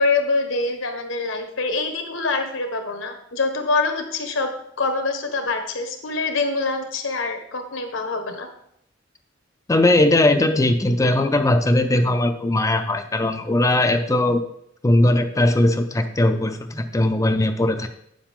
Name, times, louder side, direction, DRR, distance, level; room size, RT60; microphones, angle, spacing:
voice 1, 0.0-4.5 4.8-8.5, left 3 dB, 80° left, 5 dB, 1.4 m, -25 dB
voice 2, 9.7-14.4 14.8-17.9, left 1 dB, 15° left, 7 dB, 0.5 m, -19 dB
9.4 x 7.2 x 3.7 m, 0.73 s
head